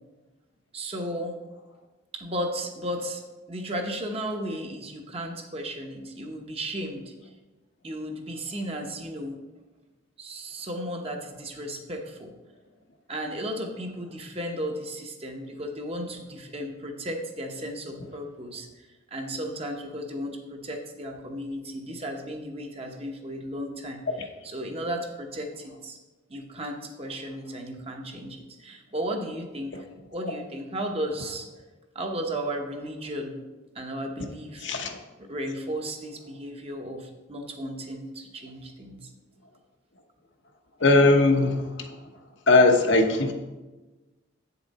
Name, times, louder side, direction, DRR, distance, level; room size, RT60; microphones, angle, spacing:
voice 1, 0.7-1.4 2.1-7.1 7.8-9.4 10.2-12.3 13.1-18.7 19.1-26.0 26.3-29.7 30.1-31.5 31.9-33.4 33.7-34.8 35.2-39.1, equal, 30° right, 3 dB, 0.9 m, -34 dB
voice 2, 34.6-35.0 40.8-41.6 42.5-43.3, left 2 dB, 65° left, 4 dB, 0.9 m, -19 dB
8.5 x 7.0 x 4.1 m, 1.2 s
head